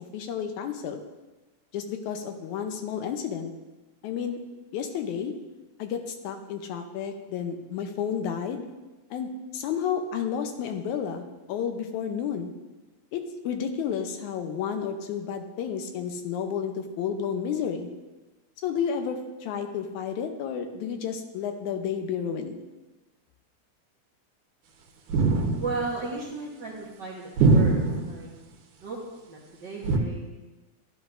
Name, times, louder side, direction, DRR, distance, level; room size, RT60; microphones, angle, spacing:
voice 1, 0.1-1.0 1.7-3.5 4.0-4.4 4.7-5.3 5.8-6.0 6.2-8.6 9.1-9.3 9.5-12.5 13.1-17.9 18.6-22.6, left 7 dB, 80° left, 6 dB, 2.1 m, -31 dB
sound 1, 25.1-25.9 27.4-28.2 29.8-30.0, right 3 dB, 85° right, 2.6 m, -21 dB
voice 2, 25.6-28.3 28.8-29.0 29.3-30.4, right 3 dB, 50° right, -4 dB, 1.4 m, -35 dB
13.0 x 11.5 x 2.5 m, 1.1 s
omnidirectional pair, 3.5 m